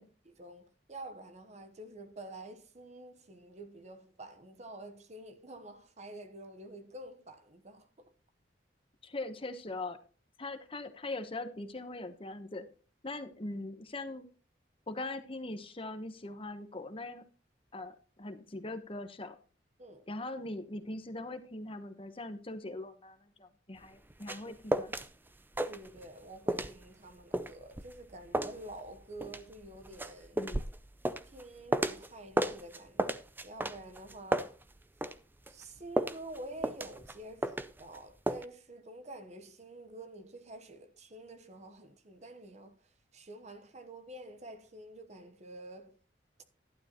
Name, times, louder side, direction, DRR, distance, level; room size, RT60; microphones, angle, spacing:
voice 1, 0.0-8.1 19.8-20.1 24.4-24.5 25.7-30.4 31.2-34.6 35.5-46.0, right 1 dB, 40° right, 1.0 m, -48 dB
voice 2, 9.0-10.0 10.4-12.7 13.0-14.3 14.9-17.2 17.7-19.4 20.1-24.9 30.4-30.6, left 2 dB, 30° left, 1.0 m, -41 dB
sound 1, 23.8-25.1 25.3-26.2 26.5-32.1 32.4-35.2 35.5-38.0 38.3-38.4, right 1 dB, 10° right, 0.5 m, -34 dB
12.0 x 10.5 x 3.0 m
head